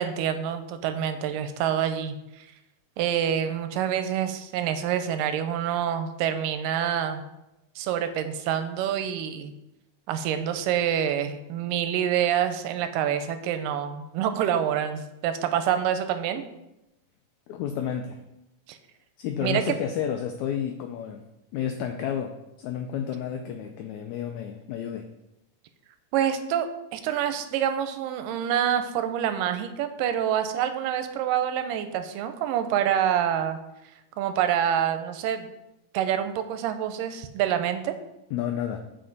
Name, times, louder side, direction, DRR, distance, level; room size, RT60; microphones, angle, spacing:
voice 1, 0.0-2.5 3.0-7.2 7.8-9.5 10.1-16.4 18.7-18.8 19.4-19.8 26.1-33.6 34.2-35.5 35.9-37.9, right 9 dB, 85° right, 9 dB, 2.3 m, -27 dB
voice 2, 17.5-18.2 19.2-21.2 21.5-25.1 38.3-38.8, left 9 dB, 85° left, 5 dB, 1.6 m, -31 dB
7.8 x 5.0 x 4.0 m, 0.91 s
omnidirectional pair, 3.8 m